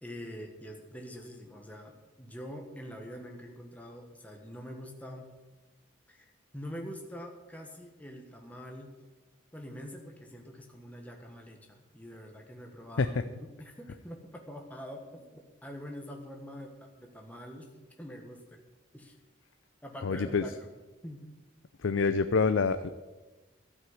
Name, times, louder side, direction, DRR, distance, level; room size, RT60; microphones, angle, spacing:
voice 1, 0.0-5.3 6.1-8.9 9.5-15.2 15.6-17.7 18.0-18.6 18.9-19.2 19.8-20.7 21.0-21.3, equal, 10° left, 2 dB, 1.4 m, -45 dB
voice 2, 20.0-20.4 21.8-22.9, left 4 dB, 70° left, 10 dB, 0.5 m, -26 dB
13.0 x 6.2 x 9.5 m, 1.2 s
head